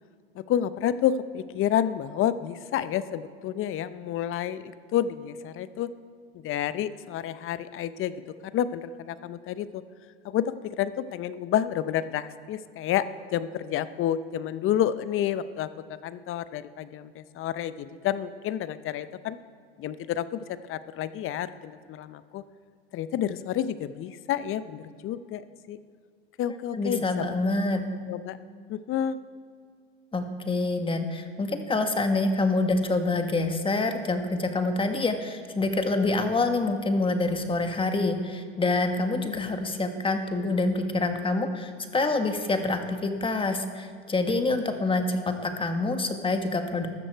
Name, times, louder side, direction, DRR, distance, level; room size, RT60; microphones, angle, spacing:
voice 1, 0.3-5.9 6.3-8.2 8.5-9.8 10.2-13.0 13.3-15.7 16.0-19.4 19.8-22.4 22.9-25.8 26.4-27.3 27.6-27.7 28.1-28.4 28.7-29.2, left 10 dB, 40° left, 14 dB, 0.8 m, -29 dB
voice 2, 26.7-27.8 30.1-46.9, left 2 dB, 15° left, 6 dB, 1.6 m, -26 dB
13.5 x 13.5 x 4.6 m, 2.1 s
hypercardioid pair, 90°, 31 cm